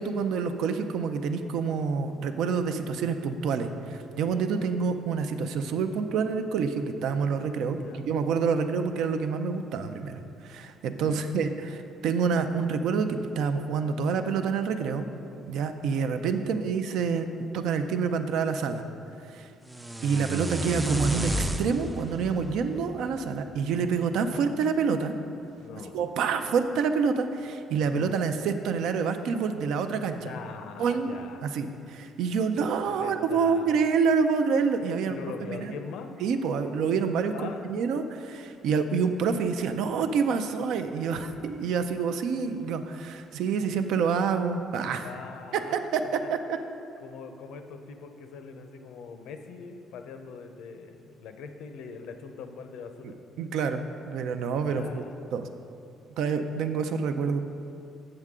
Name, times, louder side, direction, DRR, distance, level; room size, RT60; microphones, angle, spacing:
voice 1, 0.0-15.1 15.5-17.3 17.5-18.8 19.3-19.5 20.0-21.3 21.6-25.1 25.9-30.3 30.8-31.2 31.4-35.2 35.5-35.7 36.2-45.1 45.5-45.6 45.9-46.6 53.0-55.0 55.3-55.5 56.2-57.4, right 5 dB, 70° right, 8 dB, 0.5 m, -27 dB
voice 2, 7.8-8.1 10.9-11.3 16.4-16.7 24.3-24.5 25.6-26.3 27.8-28.3 30.2-31.4 32.9-33.8 35.1-36.2 37.3-37.7 41.1-41.3 45.0-45.8 46.2-46.3 47.0-53.2 54.6-55.1, left 5 dB, 75° left, 7 dB, 0.6 m, -42 dB
sound 1, 19.7-23.8, right 1 dB, 10° right, 0.4 m, -32 dB
7.8 x 7.5 x 3.6 m, 2.6 s
cardioid pair, 145°, 0 cm